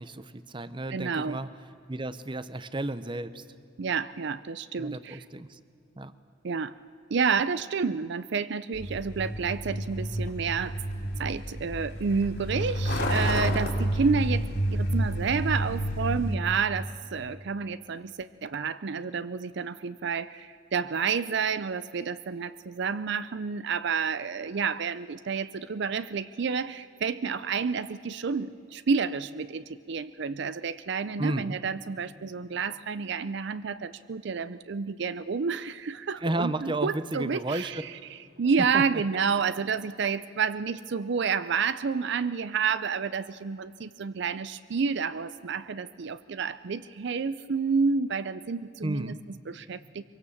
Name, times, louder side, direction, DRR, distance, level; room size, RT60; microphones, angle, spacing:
voice 1, 0.0-1.5 1.9-3.4 4.8-5.6 6.0-6.1 31.2-31.6 36.2-37.8 38.7-38.8 48.8-49.2, right 2 dB, 25° right, 14 dB, 0.7 m, -32 dB
voice 2, 0.9-1.4 3.8-5.0 6.5-6.7 7.1-10.7 11.2-14.4 14.9-16.8 17.1-18.0 18.5-20.2 20.7-22.5 22.8-26.7 27.0-28.5 28.9-29.6 29.9-33.7 34.1-35.7 36.1-37.9 38.4-49.1 49.7-49.8, right 5 dB, 60° right, 15 dB, 0.5 m, -29 dB
Truck, 8.7-16.3, equal, 55° left, 3.0 m, -29 dB
23.5 x 23.5 x 7.2 m, 2.5 s
head